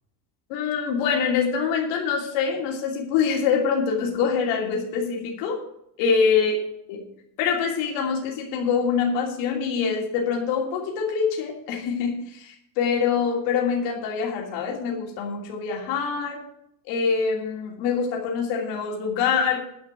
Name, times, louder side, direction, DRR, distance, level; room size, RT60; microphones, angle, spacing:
voice 1, 0.5-5.6 6.0-6.6 6.9-7.1 7.4-16.4 16.9-19.6, left 6 dB, 80° left, -2 dB, 3.0 m, -25 dB
10.5 x 5.9 x 8.4 m, 0.76 s
cardioid pair, 145°, 45 cm